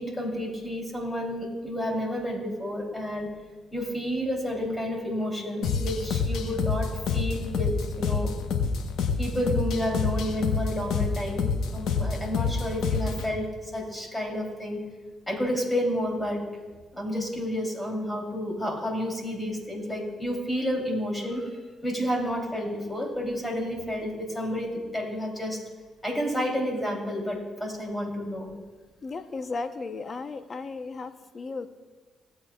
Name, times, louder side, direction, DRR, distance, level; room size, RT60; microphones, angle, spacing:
voice 1, 0.0-3.3 3.7-8.3 9.2-14.8 15.3-16.4 16.9-25.6 26.0-28.5, equal, 10° left, 0 dB, 3.3 m, -30 dB
sound 1, 5.6-13.3, left 5 dB, 80° left, 1.1 m, -28 dB
voice 2, 29.0-31.7, left 3 dB, 40° left, 9 dB, 0.9 m, -35 dB
18.0 x 8.1 x 2.4 m, 1.3 s
supercardioid pair, 70°, 0 cm